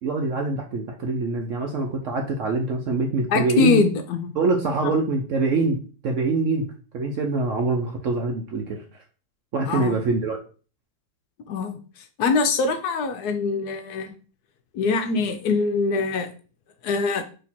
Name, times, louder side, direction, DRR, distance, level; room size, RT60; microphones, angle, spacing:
voice 1, 0.0-3.8 4.4-6.7 6.9-8.8 9.5-10.4, right 3 dB, 65° right, 2 dB, 0.8 m, -24 dB
voice 2, 3.3-4.3 4.8-4.9 9.7-10.0 11.5-11.8 12.2-14.1 14.7-16.3 16.8-17.2, left 4 dB, 70° left, 7 dB, 1.1 m, -23 dB
4.4 x 2.9 x 4.1 m, 0.38 s
omnidirectional pair, 1.9 m